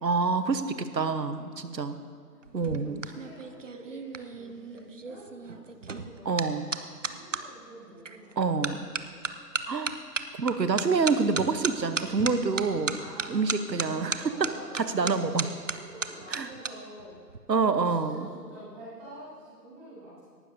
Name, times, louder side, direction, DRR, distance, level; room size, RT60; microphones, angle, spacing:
voice 1, 0.0-2.0 2.5-3.0 6.2-6.7 8.4-8.8 9.7-9.9 10.4-13.0 13.3-15.5 16.3-16.5 17.5-18.3, right 4 dB, 80° right, 10 dB, 1.1 m, -27 dB
sound 1, 2.4-7.4 8.1-8.3 8.6-16.7 17.0-17.4, right 4 dB, 50° right, 0.6 m, -35 dB
voice 2, 2.5-9.2 12.9-13.5 13.8-17.3 17.6-20.2, right 1 dB, 5° right, -10 dB, 1.8 m, -47 dB
18.0 x 12.0 x 2.7 m, 2.2 s
figure-of-eight pair, 165°, 50 cm